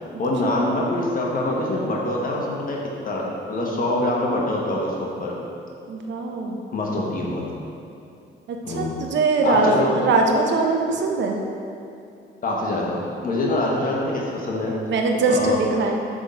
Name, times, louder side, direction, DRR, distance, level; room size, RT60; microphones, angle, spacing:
voice 1, 0.2-2.8 3.0-5.4 6.7-7.4 8.6-9.0 9.4-9.9 12.4-14.7 15.3-15.5, left 1 dB, 45° left, -3 dB, 1.2 m, -24 dB
voice 2, 5.9-6.6 8.5-11.4 14.9-16.0, right 3 dB, 65° right, 2 dB, 0.8 m, -21 dB
6.2 x 3.8 x 4.1 m, 2.6 s
cardioid pair, 90°, 20 cm